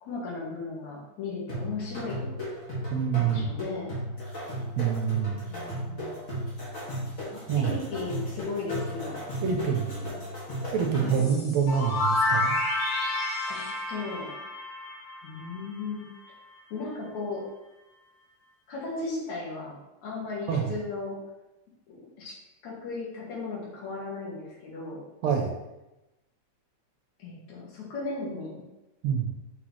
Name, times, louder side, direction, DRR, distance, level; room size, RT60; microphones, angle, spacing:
voice 1, 0.0-2.4 3.1-4.0 5.5-6.2 7.3-9.2 11.0-11.2 13.5-14.3 15.2-16.1 16.7-17.4 18.7-19.8 20.0-21.2 21.9-22.3 22.6-25.0 27.2-28.7, left 3 dB, 70° left, -4 dB, 3.0 m, -36 dB
sound 1, 1.5-11.4, equal, 30° left, 2.0 m, -35 dB
voice 2, 2.9-3.5 4.8-5.5 7.5-7.7 9.4-9.9 10.7-12.6 20.5-20.6 25.2-25.5 29.0-29.3, right 7 dB, 75° right, 2 dB, 1.8 m, -26 dB
sound 2, 11.1-15.9, left 2 dB, 90° left, 3.2 m, -29 dB
6.1 x 5.9 x 3.2 m, 0.98 s
omnidirectional pair, 3.5 m